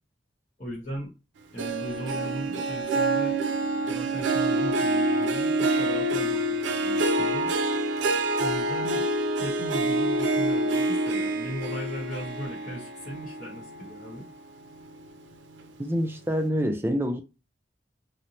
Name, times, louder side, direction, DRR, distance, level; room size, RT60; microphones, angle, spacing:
voice 1, 0.6-1.1 1.5-3.4 3.9-7.5 8.4-9.1 9.4-14.3, right 1 dB, 45° left, 1.0 m, -37 dB
Harp, 1.6-14.3 14.7-15.1 15.6-15.7, right 2 dB, 85° right, 0.4 m, -27 dB
voice 2, 15.8-17.2, equal, 15° right, 0.3 m, -26 dB
2.7 x 2.1 x 2.9 m
head